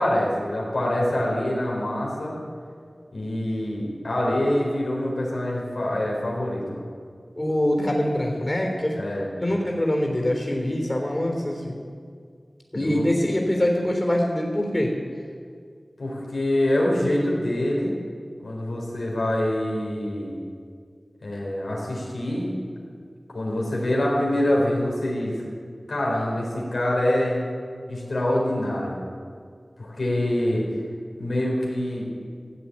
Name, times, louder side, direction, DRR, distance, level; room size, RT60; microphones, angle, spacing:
voice 1, 0.0-2.4 3.1-6.8 8.9-9.3 12.8-13.1 16.0-17.9 18.4-20.4 21.2-22.5 23.3-25.4 25.9-27.4 27.9-29.0 29.8-30.7 31.2-32.1, left 1 dB, 85° left, -3 dB, 4.0 m, -25 dB
voice 2, 7.4-9.0 9.4-11.8 12.7-15.0, left 1 dB, 35° left, 1 dB, 3.4 m, -24 dB
15.0 x 7.9 x 8.7 m, 2.1 s
wide cardioid pair, 40°, 0 cm